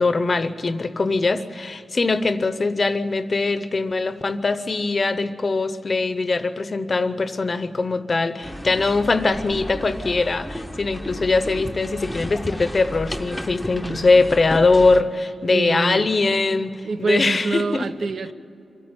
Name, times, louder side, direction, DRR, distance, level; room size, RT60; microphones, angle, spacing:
voice 1, 0.0-17.9, left 3 dB, 35° left, 12 dB, 0.8 m, -21 dB
Gente Trabajando Coches al Fondo, 8.4-15.0, equal, ahead, 0.8 m, -33 dB
voice 2, 13.8-14.1 15.5-16.1 16.8-18.3, right 4 dB, 60° right, 9 dB, 0.9 m, -26 dB
24.0 x 13.5 x 9.6 m, 2.7 s
wide cardioid pair, 155°, 0 cm